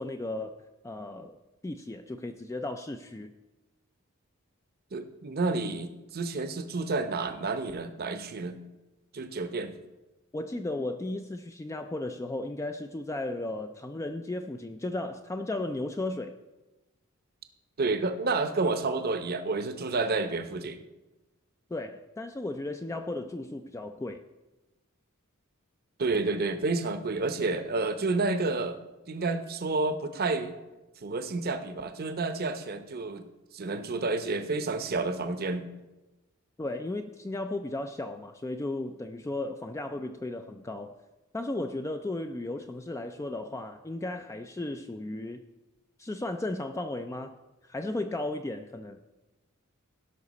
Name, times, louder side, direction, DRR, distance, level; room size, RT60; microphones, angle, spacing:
voice 1, 0.0-1.4 1.6-3.3 10.3-16.4 21.7-24.2 36.6-41.0 41.3-45.4 46.0-47.4 47.6-49.0, left 2 dB, 15° left, 6 dB, 0.3 m, -35 dB
voice 2, 4.9-8.6 9.1-9.8 17.8-20.8 26.0-28.8 29.1-30.5 31.0-33.3 33.5-35.7, right 3 dB, 45° right, 9 dB, 0.7 m, -30 dB
17.0 x 5.7 x 4.1 m, 1.1 s
head